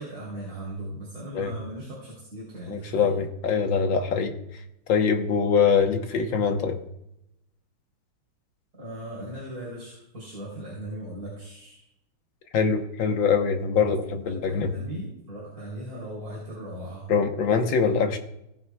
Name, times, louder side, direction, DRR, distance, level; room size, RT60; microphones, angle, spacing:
voice 1, 0.0-3.2 8.8-11.9 13.8-13.9 14.2-17.1, right 1 dB, 40° right, -5 dB, 4.1 m, -38 dB
voice 2, 2.7-4.3 4.9-6.8 12.5-14.7 17.1-18.2, left 5 dB, 65° left, 5 dB, 1.8 m, -23 dB
18.5 x 9.4 x 2.3 m, 0.83 s
omnidirectional pair, 2.3 m